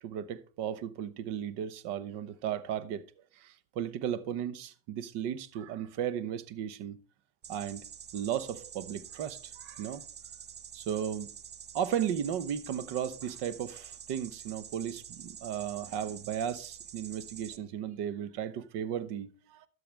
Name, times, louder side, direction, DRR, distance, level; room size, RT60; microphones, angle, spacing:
voice 1, 0.0-3.0 3.4-7.0 7.5-7.8 8.1-10.0 10.7-11.3 11.7-19.7, right 9 dB, 60° right, 1.1 m, -35 dB
sound 1, 7.4-17.6, right 8 dB, 25° right, 0.5 m, -47 dB
12.5 x 6.8 x 3.4 m
supercardioid pair, 115°, 46 cm